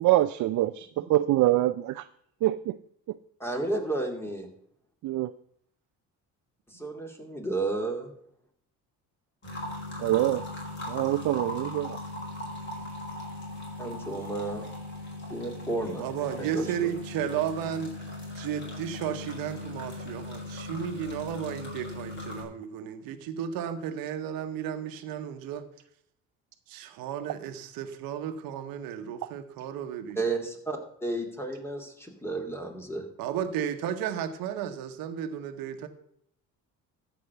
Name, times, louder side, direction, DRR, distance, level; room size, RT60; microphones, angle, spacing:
voice 1, 0.0-2.1 2.4-2.8 5.0-5.3 10.0-10.4 10.9-12.0, right 15 dB, 60° right, 12 dB, 0.5 m, -25 dB
voice 2, 3.4-4.5 6.7-8.1 13.8-14.7 15.3-16.1 16.4-16.9 30.2-33.0, right 2 dB, 5° left, 3 dB, 2.4 m, -32 dB
sound 1, 9.4-22.4, left 2 dB, 30° left, 4.8 m, -38 dB
voice 3, 16.0-17.9 18.3-25.6 26.7-30.2 33.2-35.9, right 9 dB, 85° right, 8 dB, 1.1 m, -33 dB
14.0 x 4.9 x 6.8 m, 0.69 s
cardioid pair, 95°, 34 cm